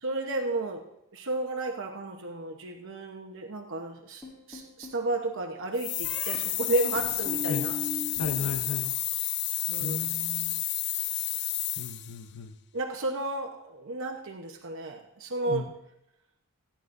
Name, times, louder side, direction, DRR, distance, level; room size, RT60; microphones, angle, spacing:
voice 1, 0.0-0.8 1.1-7.8 9.7-10.1 12.7-15.7, right 2 dB, 65° right, 2 dB, 1.1 m, -32 dB
sound 1, 4.2-5.0 6.0-6.4 7.0-8.5 8.8-9.4, left 4 dB, 10° left, 5.9 m, -39 dB
sound 2, 5.8-12.2, left 14 dB, 55° left, 0.5 m, -31 dB
voice 2, 8.2-8.9 9.8-10.6 11.8-12.5 15.5-15.7, left 4 dB, 90° left, 6 dB, 0.7 m, -35 dB
29.0 x 10.0 x 2.7 m, 0.87 s
head